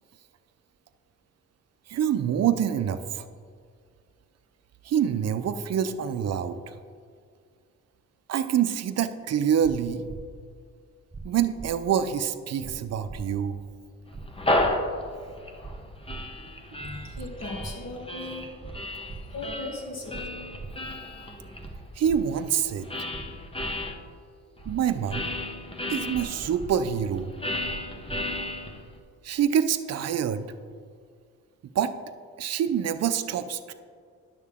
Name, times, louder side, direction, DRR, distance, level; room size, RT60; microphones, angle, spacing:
voice 1, 1.9-3.2 4.8-6.7 8.3-10.0 11.2-13.6 22.0-23.1 24.7-25.3 25.9-27.3 29.2-30.5 31.7-31.9 32.4-33.7, right 8 dB, 55° right, 11 dB, 0.6 m, -26 dB
sound 1, 9.6-9.7 10.1-10.2 11.1-11.2 11.6-11.7 12.6-12.7 13.1-13.2 14.1-14.2 14.6-14.7 15.6-15.7 16.1-16.2 17.1-17.2 17.6-17.7 18.6-18.7 19.1-19.2 20.1-20.2 20.6-20.7 21.6-21.7 22.1-22.2 23.1-23.2 23.6-23.7 24.6-24.7 25.1-25.2 26.1-26.2 26.6-26.7 27.6-27.7 28.1-28.2, right 4 dB, 15° right, 0.9 m, -40 dB
sound 2, 14.1-23.9 24.6-29.0, left 1 dB, 20° left, 1.0 m, -33 dB
voice 2, 16.9-18.5 19.3-20.3, left 2 dB, 60° left, -3 dB, 2.4 m, -37 dB
10.5 x 6.5 x 3.6 m, 2.1 s
cardioid pair, 80°, 30 cm